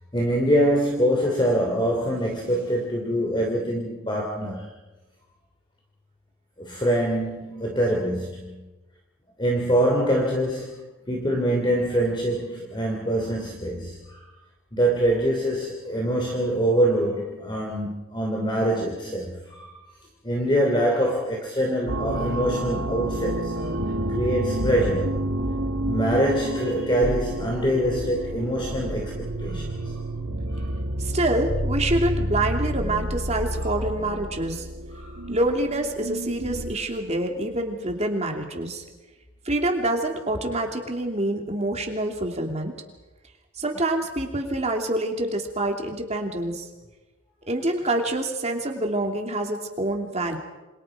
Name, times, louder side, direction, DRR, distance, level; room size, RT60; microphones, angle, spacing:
voice 1, 0.1-4.7 6.6-8.7 9.4-14.2 14.7-19.7 20.2-23.7 24.1-25.1 25.8-30.0 30.5-30.7 34.9-35.2, equal, 20° left, 0 dB, 2.8 m, -24 dB
sound 1, 21.9-36.9, right 1 dB, 60° right, 1.9 m, -29 dB
voice 2, 31.0-34.7 35.3-38.8 39.4-42.7 43.5-46.7 47.5-50.4, right 1 dB, 30° right, 2 dB, 2.9 m, -26 dB
28.0 x 27.0 x 5.1 m, 1.1 s
head